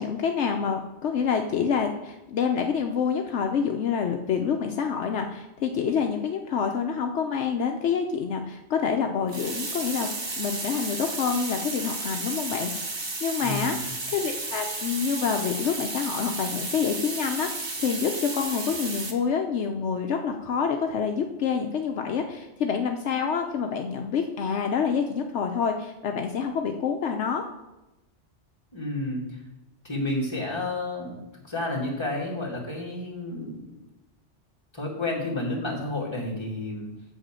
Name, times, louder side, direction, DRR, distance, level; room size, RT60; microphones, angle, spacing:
voice 1, 0.0-10.1 10.4-27.4, left 6 dB, 75° left, 4 dB, 1.0 m, -27 dB
sound 1, 9.3-19.1, right 3 dB, 25° right, 0.8 m, -33 dB
voice 2, 13.4-13.8 28.7-29.4 29.8-31.2 31.5-33.8 34.7-36.9, left 2 dB, 25° left, -3 dB, 2.2 m, -31 dB
7.9 x 4.9 x 7.4 m, 0.98 s
omnidirectional pair, 1.2 m